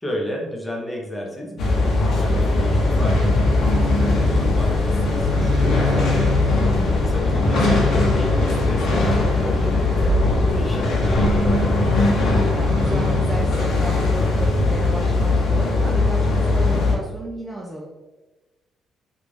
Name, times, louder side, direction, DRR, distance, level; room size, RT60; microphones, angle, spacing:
voice 1, 0.0-6.5 7.0-11.7, left 1 dB, 10° left, -2 dB, 0.9 m, -33 dB
sound 1, 1.6-17.0, left 2 dB, 70° left, 0.8 m, -20 dB
sound 2, 2.3-11.8 12.5-13.6, equal, 70° right, 0.6 m, -28 dB
voice 2, 6.7-7.3 12.1-17.9, right 1 dB, 15° right, -2 dB, 0.5 m, -33 dB
3.3 x 2.5 x 3.1 m, 1.1 s
cardioid pair, 90°, 0 cm